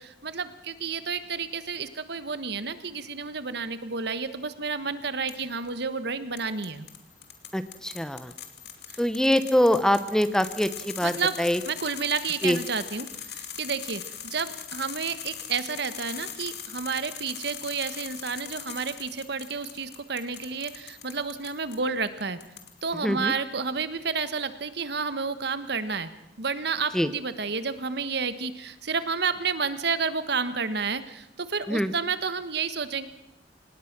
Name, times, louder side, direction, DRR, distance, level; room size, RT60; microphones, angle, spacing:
voice 1, 0.0-6.9 8.9-9.0 11.0-11.4 11.6-22.4 22.8-26.1 26.4-33.1, right 5 dB, 65° right, 12 dB, 1.4 m, -30 dB
sound 1, 5.3-5.7 6.4-21.8 22.2-23.0, left 9 dB, 65° left, 2.5 m, -41 dB
voice 2, 7.5-8.3 9.0-11.6 12.4-12.6 23.0-23.3 26.9-27.1 31.7-31.9, equal, 5° left, 12 dB, 0.9 m, -24 dB
26.0 x 19.5 x 6.1 m, 0.83 s
head